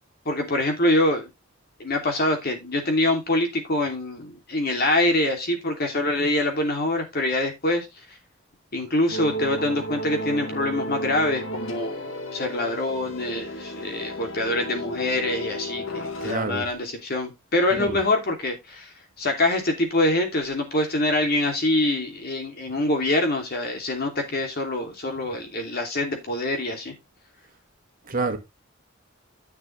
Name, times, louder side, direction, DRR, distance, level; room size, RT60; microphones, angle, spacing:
voice 1, 0.2-1.3 1.8-7.9 8.7-15.8 16.2-18.9 19.2-26.9, left 1 dB, 50° left, 2.9 m, -25 dB
sound 1, 9.1-16.3, equal, 75° left, 1.7 m, -33 dB
voice 2, 16.2-16.7 17.7-18.0 28.1-28.4, right 3 dB, 45° right, 1.7 m, -27 dB
10.5 x 6.8 x 3.3 m
head